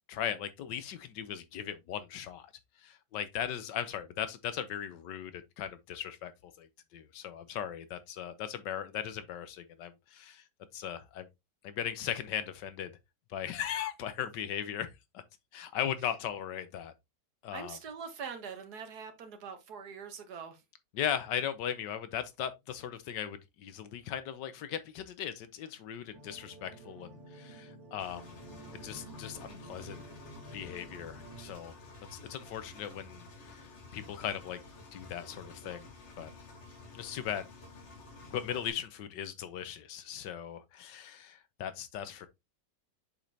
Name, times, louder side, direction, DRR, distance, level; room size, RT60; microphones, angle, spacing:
voice 1, 0.1-2.5 2.8-10.4 10.7-11.3 11.6-12.9 13.3-14.9 15.1-15.2 15.5-16.9 17.4-17.8 20.9-28.4 28.7-30.0 30.5-31.7 32.1-34.6 34.9-35.9 36.2-36.3 36.9-37.5 38.3-42.3, left 9 dB, 85° left, 1.5 m, -38 dB
voice 2, 17.5-20.6, right 6 dB, 65° right, 1.7 m, -43 dB
sound 1, 26.1-31.5, right 2 dB, 45° right, 2.0 m, -50 dB
Engine, 28.0-38.7, left 3 dB, 45° left, 1.4 m, -51 dB
7.2 x 5.2 x 2.7 m
omnidirectional pair, 1.8 m